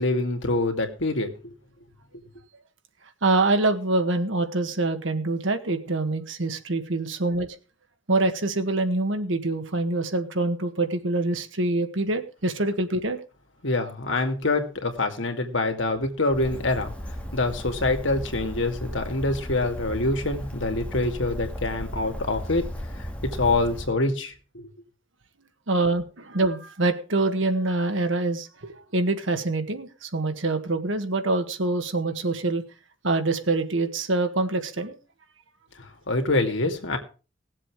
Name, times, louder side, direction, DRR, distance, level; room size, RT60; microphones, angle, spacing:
voice 1, 0.0-1.5 13.6-22.7 22.9-24.7 35.8-37.0, left 2 dB, 70° left, 2.4 m, -26 dB
voice 2, 3.2-7.5 8.1-13.2 25.7-32.6 33.0-35.0, right 2 dB, 75° right, 1.6 m, -25 dB
Bird, 16.3-23.9, equal, 5° left, 2.2 m, -35 dB
18.5 x 7.6 x 4.8 m
head